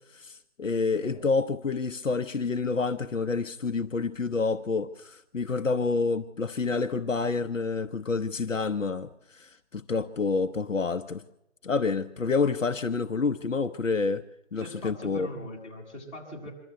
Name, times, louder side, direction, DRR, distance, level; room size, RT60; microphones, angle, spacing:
voice 1, 0.1-11.2 11.6-14.2 14.5-15.3, left 4 dB, 80° left, 1.0 m, -28 dB
voice 2, 14.6-16.5, left 1 dB, 25° left, 6.8 m, -41 dB
25.5 x 12.5 x 9.2 m
figure-of-eight pair, 170°, 38 cm